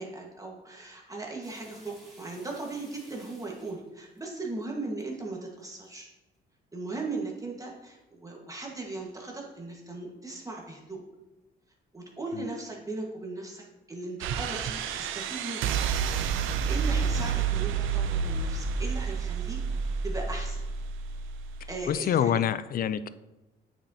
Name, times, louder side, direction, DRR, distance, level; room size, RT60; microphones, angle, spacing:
voice 1, 0.0-6.1 6.7-11.0 11.9-15.7 16.7-20.6 21.7-22.4, right 3 dB, 15° right, -1 dB, 1.5 m, -38 dB
sound 1, 1.4-5.1 5.6-6.0 6.4-6.5 6.9-7.5 8.0-8.1 8.6-8.7 8.9-9.2 9.8-9.9 10.6-10.7, right 1 dB, ahead, 2.5 m, -56 dB
sound 2, 14.2-21.9, right 6 dB, 85° right, 0.5 m, -29 dB
voice 2, 21.9-23.1, left 9 dB, 45° left, 15 dB, 0.4 m, -26 dB
8.8 x 5.1 x 2.8 m, 1.0 s
cardioid pair, 90°, 20 cm